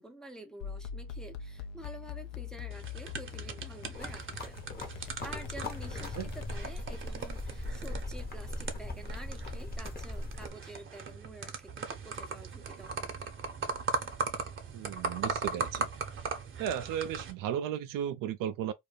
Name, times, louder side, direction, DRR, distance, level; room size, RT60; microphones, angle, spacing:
voice 1, 0.0-13.3, right 1 dB, ahead, 0.6 m, -49 dB
sound 1, 0.6-7.0, left 8 dB, 60° left, 0.6 m, -43 dB
sound 2, 2.7-17.3, right 4 dB, 35° right, 0.8 m, -39 dB
sound 3, 3.9-10.5, left 2 dB, 25° left, 0.9 m, -40 dB
voice 2, 14.7-15.9 16.6-18.7, right 10 dB, 60° right, 0.5 m, -35 dB
2.4 x 2.1 x 3.2 m
hypercardioid pair, 60°, 38 cm